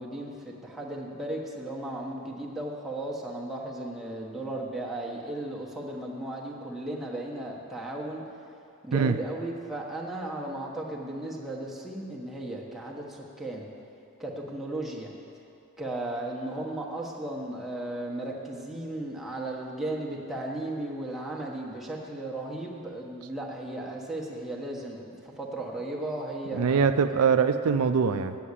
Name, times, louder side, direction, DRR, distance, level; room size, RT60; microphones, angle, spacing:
voice 1, 0.0-8.2 8.8-13.7 14.2-15.1 15.8-26.8, right 1 dB, ahead, -4 dB, 1.2 m, -35 dB
voice 2, 26.5-28.4, right 6 dB, 80° right, 9 dB, 0.4 m, -23 dB
8.6 x 7.5 x 8.2 m, 2.6 s
head